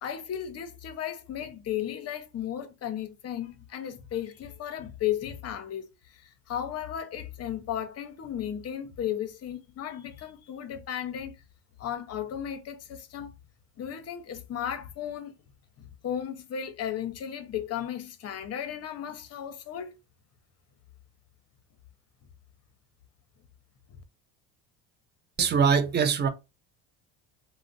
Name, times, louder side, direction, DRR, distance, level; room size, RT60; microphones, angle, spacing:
voice 1, 0.0-11.3 11.8-13.3 13.8-15.3 15.8-20.0, left 10 dB, 35° left, 0.6 m, -35 dB
voice 2, 25.4-26.3, right 6 dB, 25° right, 0.5 m, -22 dB
2.4 x 2.0 x 3.8 m
supercardioid pair, 110°, 42 cm